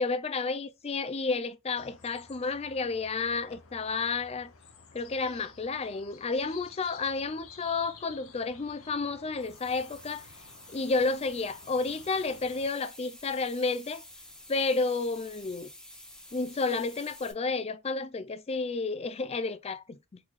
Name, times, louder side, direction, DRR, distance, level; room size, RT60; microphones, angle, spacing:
voice 1, 0.0-4.5 4.9-10.3 10.7-14.0 14.5-15.7 16.3-20.2, left 3 dB, 30° left, 0.4 m, -31 dB
sound 1, 1.8-12.7, left 5 dB, 80° left, 0.8 m, -53 dB
sound 2, 9.4-17.3, left 1 dB, 5° left, 0.8 m, -50 dB
3.9 x 3.1 x 2.4 m
head